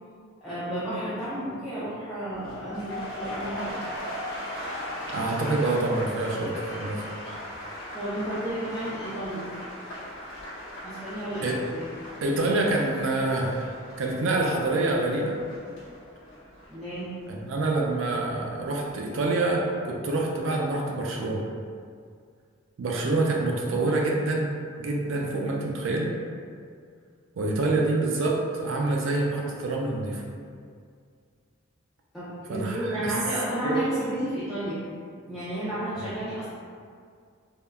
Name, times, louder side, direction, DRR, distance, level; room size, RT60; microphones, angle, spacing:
voice 1, 0.4-3.8 7.6-9.5 10.8-11.9 16.7-17.1 23.7-23.8 32.1-34.8 35.3-36.5, right 1 dB, ahead, -14 dB, 0.4 m, -32 dB
sound 1, 2.3-18.4 18.7-19.1, left 1 dB, 60° left, 0.7 m, -39 dB
voice 2, 5.1-6.5 6.8-7.1 11.4-11.6 12.2-13.7 14.0-15.4 17.3-21.4 22.8-24.5 24.8-26.1 27.4-30.2 32.5-33.1 33.6-33.8 35.9-36.1, right 2 dB, 65° right, -1 dB, 0.4 m, -26 dB
3.4 x 2.1 x 2.2 m, 2.2 s
head